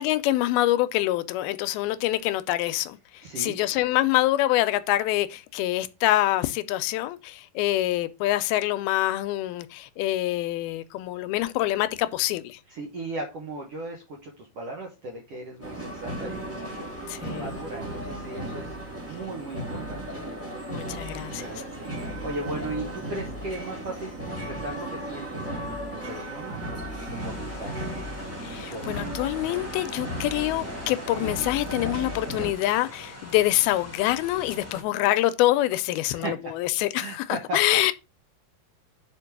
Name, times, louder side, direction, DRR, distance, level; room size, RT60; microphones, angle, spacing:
voice 1, 0.0-12.6 17.1-17.5 20.7-21.6 28.4-37.9, left 15 dB, 80° left, 2.3 m, -25 dB
voice 2, 3.2-3.6 12.7-20.2 21.3-25.5 25.9-26.6 27.2-28.0 28.5-29.1 36.1-36.5 37.0-37.8, right 2 dB, 80° right, 1.3 m, -37 dB
sound 1, 15.6-32.5, right 1 dB, 5° right, 1.2 m, -35 dB
sound 2, 27.2-34.8, left 1 dB, 10° left, 0.7 m, -43 dB
5.2 x 5.1 x 5.9 m
omnidirectional pair, 4.5 m